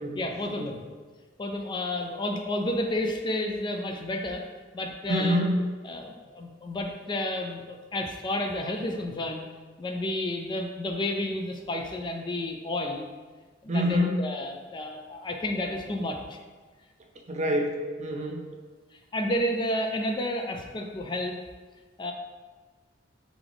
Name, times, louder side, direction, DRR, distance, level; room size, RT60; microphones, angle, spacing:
voice 1, 0.2-0.8 1.4-4.4 4.7-5.4 5.8-9.4 9.8-13.0 13.6-16.4 19.1-21.4 22.0-22.1, left 1 dB, 25° left, 3 dB, 0.3 m, -31 dB
voice 2, 5.1-5.6 13.7-14.1 17.3-18.4, equal, 40° right, 2 dB, 0.5 m, -26 dB
3.5 x 3.4 x 3.8 m, 1.4 s
head